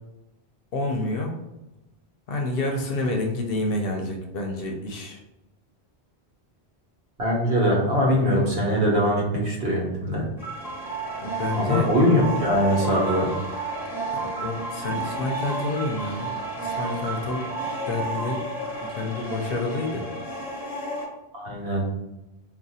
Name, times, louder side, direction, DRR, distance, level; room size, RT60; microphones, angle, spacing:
voice 1, 0.7-1.3 2.3-5.2 11.2-11.9 14.1-18.4 18.8-20.1, left 2 dB, 65° left, 1 dB, 0.7 m, -29 dB
voice 2, 7.2-10.3 11.6-13.3 21.3-21.8, equal, 70° right, -2 dB, 1.1 m, -22 dB
sound 1, 10.4-21.0, right 2 dB, ahead, 0.8 m, -31 dB
2.4 x 2.2 x 4.0 m, 0.94 s
omnidirectional pair, 1.1 m